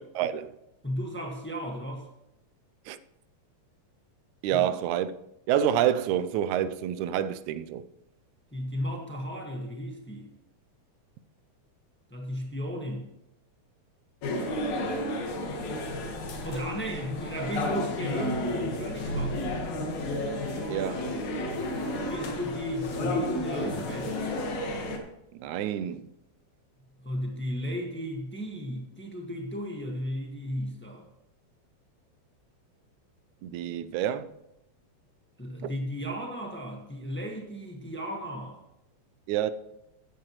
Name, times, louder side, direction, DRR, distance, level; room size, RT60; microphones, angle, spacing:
voice 1, 0.2-0.5 2.9-3.0 4.4-5.1 5.5-7.8 20.7-21.1 25.3-26.1 33.4-34.3 35.6-35.7 39.3-39.5, right 10 dB, 85° right, 2.0 m, -28 dB
voice 2, 0.8-2.1 4.5-4.7 8.5-10.3 12.1-13.1 16.4-19.5 22.1-24.3 27.0-31.1 35.4-38.6, equal, 15° left, 0.4 m, -35 dB
sound 1, 14.2-25.0, left 1 dB, 80° left, 3.0 m, -32 dB
14.0 x 9.8 x 3.1 m
omnidirectional pair, 3.3 m